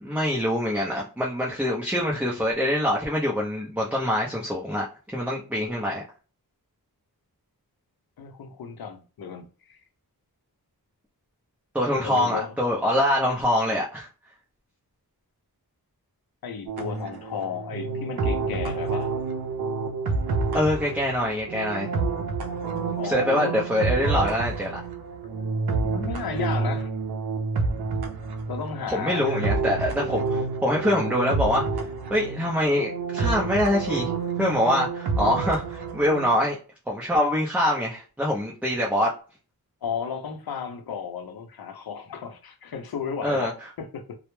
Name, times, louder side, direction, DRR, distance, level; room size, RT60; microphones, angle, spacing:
voice 1, 0.0-4.9 5.1-6.0 11.7-14.1 20.5-21.9 23.0-24.8 28.9-31.8 32.1-34.1 34.4-36.6 36.9-39.1 43.2-43.5, left 1 dB, 5° right, 0.5 m, -24 dB
voice 2, 8.2-9.8 12.0-12.5 16.4-19.1 23.0-23.5 25.8-26.9 28.5-29.5 39.8-44.2, left 6 dB, 70° left, 0.6 m, -34 dB
sound 1, 16.7-36.3, right 4 dB, 85° right, 0.5 m, -29 dB
2.1 x 2.0 x 3.0 m
wide cardioid pair, 100°, 38 cm